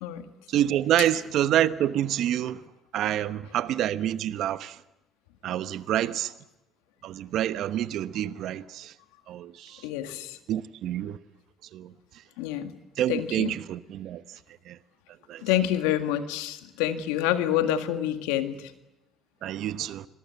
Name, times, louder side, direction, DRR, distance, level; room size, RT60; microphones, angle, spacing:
voice 1, 0.5-2.6 2.9-4.7 5.4-6.3 7.0-8.9 9.3-9.7 10.5-11.2 11.7-11.9 13.0-14.2 14.7-14.8 15.3-15.4 19.4-20.1, right 11 dB, 70° right, 1.1 m, -27 dB
voice 2, 9.8-10.4 12.4-12.7 13.1-13.6 15.4-18.7, left 11 dB, 90° left, 1.9 m, -27 dB
26.5 x 21.0 x 8.3 m
supercardioid pair, 65°, 0 cm